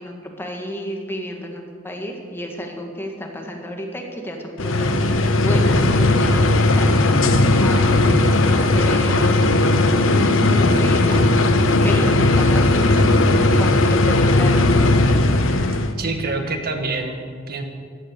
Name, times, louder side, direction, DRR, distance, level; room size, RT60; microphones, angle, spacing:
voice 1, 0.0-6.9 7.5-11.2 11.8-14.8, equal, 10° left, 2 dB, 1.7 m, -32 dB
sound 1, 4.6-15.9, left 2 dB, 75° left, 1.0 m, -17 dB
Packing tape duct tape, 7.7-9.4 10.1-10.2 10.5-13.5 13.9-14.1, equal, 80° right, 3.4 m, -34 dB
voice 2, 8.1-8.4 16.0-17.2 17.5-17.6, right 3 dB, 50° right, 5 dB, 1.6 m, -26 dB
sound 2, 8.9-13.9, right 2 dB, 30° right, 0.5 m, -30 dB
15.5 x 11.0 x 6.7 m, 2.1 s
head